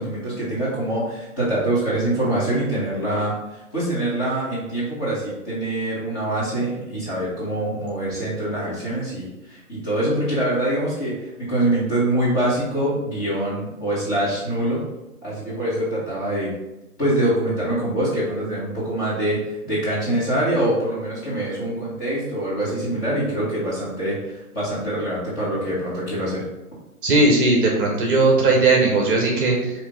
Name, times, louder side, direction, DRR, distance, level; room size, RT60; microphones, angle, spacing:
voice 1, 0.0-14.8 15.2-16.5 17.0-26.4, right 1 dB, 20° left, -10 dB, 1.4 m, -24 dB
voice 2, 27.0-29.7, right 2 dB, 35° right, -1 dB, 0.9 m, -18 dB
5.0 x 2.8 x 3.7 m, 0.99 s
hypercardioid pair, 155°, 45 cm